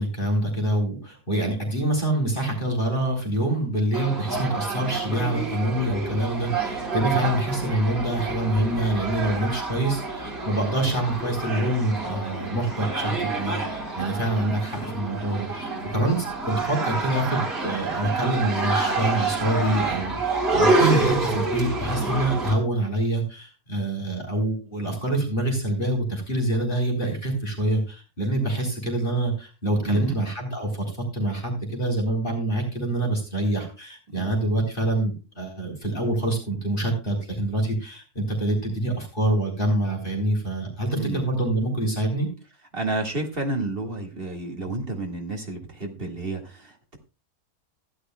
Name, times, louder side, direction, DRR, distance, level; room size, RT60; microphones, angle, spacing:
voice 1, 0.0-30.8 31.1-42.3, right 1 dB, 35° left, 0 dB, 4.0 m, -26 dB
sound 1, 3.9-22.5, right 3 dB, 80° right, 4.0 m, -28 dB
voice 2, 29.8-30.2 34.1-34.3 40.9-41.2 42.7-47.0, right 2 dB, 40° right, 2 dB, 2.0 m, -31 dB
16.0 x 11.5 x 2.2 m, 0.32 s
omnidirectional pair, 1.5 m